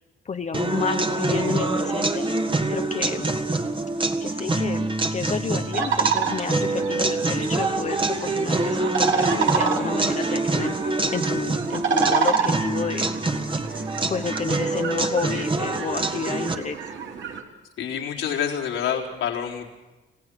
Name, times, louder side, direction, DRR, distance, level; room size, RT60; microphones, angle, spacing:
voice 1, 0.2-2.3 2.7-3.3 4.2-10.8 11.1-13.1 14.1-16.8, left 5 dB, 35° left, 7 dB, 1.0 m, -30 dB
sound 1, 0.5-16.6, right 2 dB, 25° right, 1.8 m, -25 dB
sound 2, 5.7-17.4, right 6 dB, 70° right, 3.0 m, -28 dB
voice 2, 17.8-19.7, left 8 dB, 85° left, -1 dB, 4.1 m, -27 dB
28.5 x 16.5 x 6.4 m, 1.1 s
cardioid pair, 90°, 20 cm